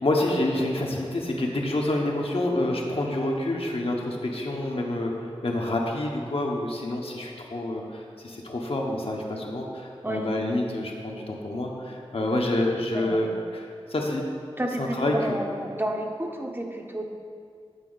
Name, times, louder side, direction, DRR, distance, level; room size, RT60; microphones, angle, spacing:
voice 1, 0.0-13.3 13.5-14.2 14.8-15.4, left 1 dB, 65° left, 0 dB, 0.9 m, -28 dB
voice 2, 14.6-17.0, right 1 dB, 20° right, 2 dB, 0.7 m, -30 dB
8.2 x 4.4 x 3.9 m, 2.3 s
wide cardioid pair, 50°, 11 cm